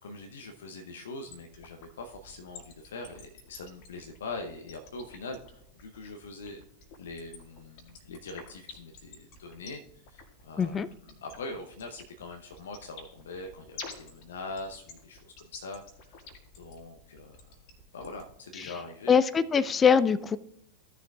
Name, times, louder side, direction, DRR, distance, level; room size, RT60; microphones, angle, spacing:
voice 1, 0.0-6.7 7.0-9.8 10.1-10.8 11.2-16.2 16.6-17.6 17.9-19.1, left 3 dB, 65° left, 4 dB, 0.8 m, -42 dB
sound 1, 1.3-18.3, left 4 dB, 45° left, 1.8 m, -47 dB
voice 2, 10.6-10.9 18.6-18.7 19.1-20.4, left 6 dB, 20° left, 17 dB, 0.3 m, -23 dB
15.0 x 6.8 x 2.4 m, 0.74 s
figure-of-eight pair, 90°, 0 cm